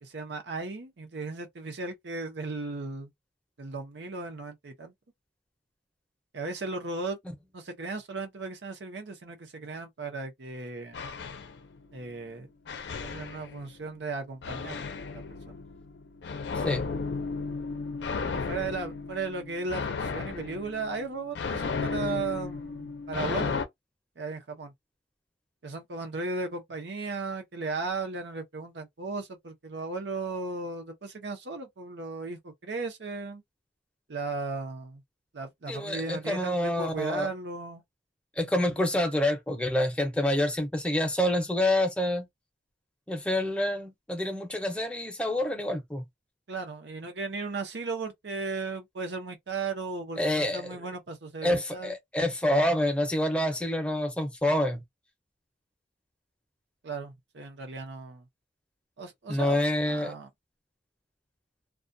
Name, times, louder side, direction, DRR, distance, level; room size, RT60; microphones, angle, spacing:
voice 1, 0.0-3.1 3.6-4.9 6.3-7.2 7.5-11.0 11.9-12.5 13.0-14.8 15.1-15.6 18.2-23.6 24.2-24.7 25.6-33.4 34.1-35.0 35.3-37.8 46.5-51.9 56.8-58.2 59.0-59.6 59.9-60.3, right 3 dB, 75° right, 0.8 m, -36 dB
sound 1, 10.9-12.1 12.7-13.9 14.4-23.7, left 4 dB, 75° left, 0.5 m, -34 dB
voice 2, 35.7-37.3 38.4-42.3 43.1-46.0 50.2-50.7 51.4-54.8 59.3-60.1, left 1 dB, 5° left, 0.6 m, -27 dB
2.3 x 2.2 x 2.6 m
head